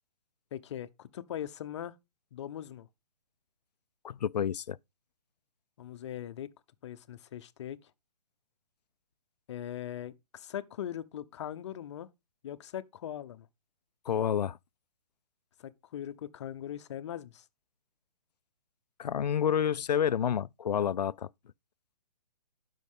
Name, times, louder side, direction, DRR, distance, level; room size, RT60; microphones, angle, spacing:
voice 1, 0.5-1.9 2.3-2.9 5.8-6.5 6.8-7.8 9.5-12.1 12.4-13.5 15.6-17.4, left 10 dB, 45° left, 0.8 m, -40 dB
voice 2, 4.0-4.8 14.1-14.6 19.0-21.3, left 8 dB, 90° left, 0.4 m, -29 dB
12.0 x 5.5 x 3.7 m
hypercardioid pair, 145°, 20 cm